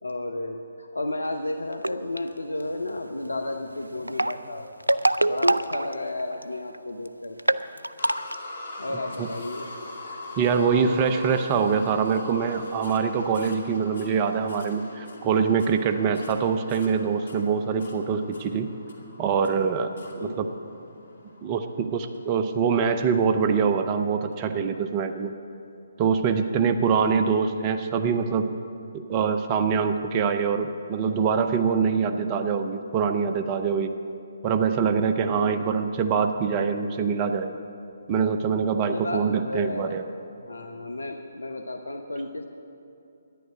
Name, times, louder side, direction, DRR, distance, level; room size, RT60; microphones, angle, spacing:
voice 1, 0.0-4.7 5.2-7.6 8.8-9.7 20.2-20.6 35.2-35.6 38.8-40.0 40.4-42.5, left 2 dB, 80° left, 5 dB, 0.8 m, -33 dB
sound 1, 1.7-2.2 3.9-6.4 6.7-6.8 7.1-7.2 7.4-8.3, right 1 dB, 90° right, 0.4 m, -24 dB
sound 2, 8.0-23.0 23.7-23.8 24.3-24.4, left 2 dB, 60° left, 2.4 m, -42 dB
voice 2, 10.4-18.7 19.2-19.9 20.2-20.5 21.4-25.3 26.0-28.5 28.9-33.9 34.4-37.5 38.1-40.0, right 6 dB, 25° right, 7 dB, 0.6 m, -24 dB
11.5 x 10.5 x 8.1 m, 2.7 s
figure-of-eight pair, 140°, 0 cm